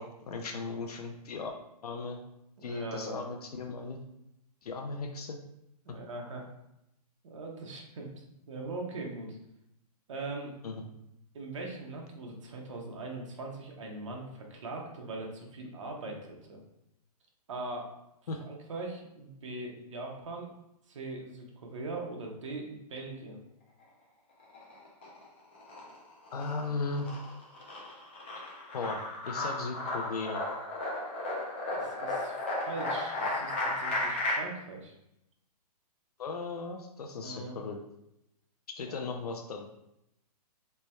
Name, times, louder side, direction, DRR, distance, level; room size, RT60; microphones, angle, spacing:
voice 1, 0.0-1.5 1.8-2.2 2.6-4.0 4.6-5.4 10.6-10.7 18.3-18.4 26.3-27.1 28.3-28.4 28.7-30.4 36.2-37.8 38.8-39.7, left 4 dB, 70° left, 3 dB, 0.5 m, -37 dB
voice 2, 2.6-3.2 5.9-6.5 7.2-8.1 8.5-9.4 10.1-10.5 11.3-16.6 17.5-17.9 18.4-20.5 20.9-23.4 31.7-34.9 37.2-37.6 38.9-39.0, right 2 dB, 50° right, 0 dB, 0.8 m, -41 dB
sound 1, 24.4-25.2 25.6-34.3, left 2 dB, 20° left, 0.4 m, -34 dB
3.3 x 2.2 x 4.1 m, 0.82 s
hypercardioid pair, 175°, 21 cm